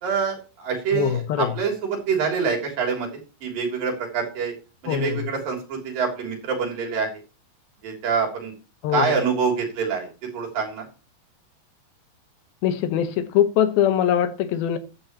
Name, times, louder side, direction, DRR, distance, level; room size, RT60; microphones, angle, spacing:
voice 1, 0.0-3.1 3.4-4.6 4.8-7.2 7.8-8.5 8.9-10.9, right 5 dB, 70° right, 4.9 m, -26 dB
voice 2, 0.9-1.5 4.9-5.3 8.8-9.2 12.6-14.8, left 10 dB, 90° left, 3.1 m, -22 dB
15.0 x 11.0 x 3.0 m
omnidirectional pair, 4.2 m